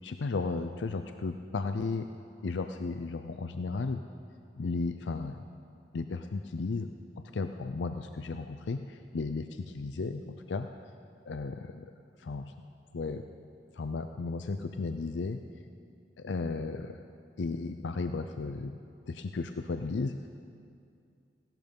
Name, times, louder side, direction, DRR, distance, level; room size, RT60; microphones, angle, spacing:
voice 1, 0.0-2.1 2.4-4.0 4.6-5.4 5.9-6.9 7.2-10.7 11.3-11.9 12.2-12.5 12.9-13.2 13.7-15.4 16.2-17.0 17.4-18.7 19.1-20.1, left 3 dB, 90° left, 7 dB, 0.5 m, -34 dB
16.0 x 12.0 x 5.3 m, 2.4 s
head